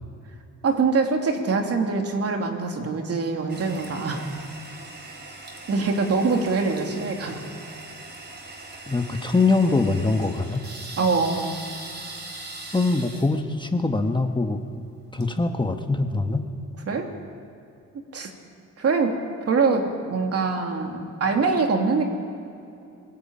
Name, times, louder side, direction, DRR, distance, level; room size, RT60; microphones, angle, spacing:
voice 1, 0.6-4.3 5.7-7.4 11.0-11.6 16.8-17.1 18.1-18.3 18.8-19.2 19.5-22.1, right 4 dB, 50° right, 3 dB, 3.1 m, -24 dB
Toilet flush, 3.5-16.1, right 2 dB, 35° right, 4.3 m, -41 dB
voice 2, 8.9-10.6 12.7-14.6 15.1-16.5, left 3 dB, 15° left, 5 dB, 1.5 m, -23 dB
21.5 x 14.5 x 9.0 m, 2.7 s
cardioid pair, 90°, 30 cm